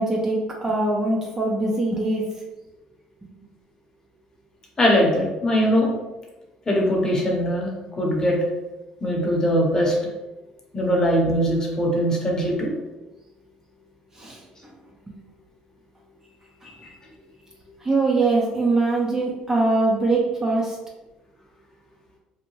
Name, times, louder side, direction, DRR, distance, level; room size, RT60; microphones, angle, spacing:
voice 1, 0.0-2.3 14.2-14.4 17.8-20.8, right 2 dB, 20° right, -2 dB, 0.5 m, -22 dB
voice 2, 4.8-5.9 6.7-8.4 9.0-9.9 10.7-12.7 16.6-16.8, equal, 25° left, -1 dB, 0.8 m, -21 dB
2.7 x 2.1 x 2.9 m, 1.1 s
cardioid pair, 100°, 3 cm